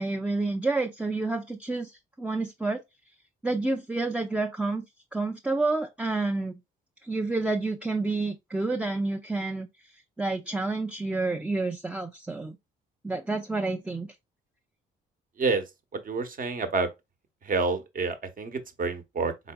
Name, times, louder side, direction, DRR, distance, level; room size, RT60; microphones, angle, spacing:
voice 1, 0.0-2.8 3.4-4.8 5.1-6.6 7.0-9.7 10.2-12.6 13.0-14.1, right 3 dB, 5° right, 0.4 m, -29 dB
voice 2, 15.9-16.9 17.4-19.5, right 4 dB, 45° right, 1.0 m, -28 dB
3.9 x 3.8 x 2.2 m
cardioid pair, 90°, 20 cm